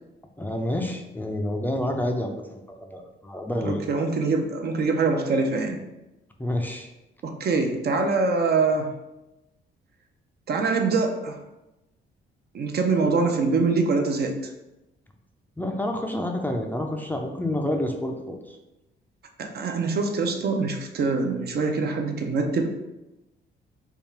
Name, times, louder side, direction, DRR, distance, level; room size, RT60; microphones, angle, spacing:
voice 1, 0.4-3.8 6.4-6.9 15.6-18.6, left 1 dB, 10° left, 2 dB, 0.4 m, -29 dB
voice 2, 3.6-5.8 7.2-8.9 10.5-11.4 12.5-14.4 19.4-22.7, right 4 dB, 55° right, 4 dB, 0.6 m, -24 dB
3.5 x 2.4 x 4.3 m, 0.98 s
cardioid pair, 90°, 20 cm